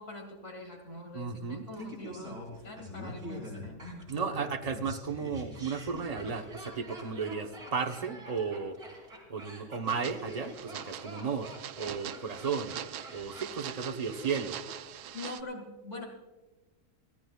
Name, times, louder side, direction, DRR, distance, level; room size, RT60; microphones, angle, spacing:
voice 1, 0.0-3.9 15.1-16.1, left 2 dB, 50° left, 2 dB, 2.3 m, -43 dB
voice 2, 1.1-1.6 4.1-8.8 9.3-12.8 13.1-14.6, right 5 dB, 30° right, 4 dB, 0.8 m, -34 dB
Laughter, 1.8-14.8 15.0-15.1, equal, 55° right, 4.6 m, -45 dB
sound 1, 9.9-15.4, right 11 dB, 85° right, 1.2 m, -43 dB
27.0 x 15.5 x 2.3 m, 1.2 s
omnidirectional pair, 1.6 m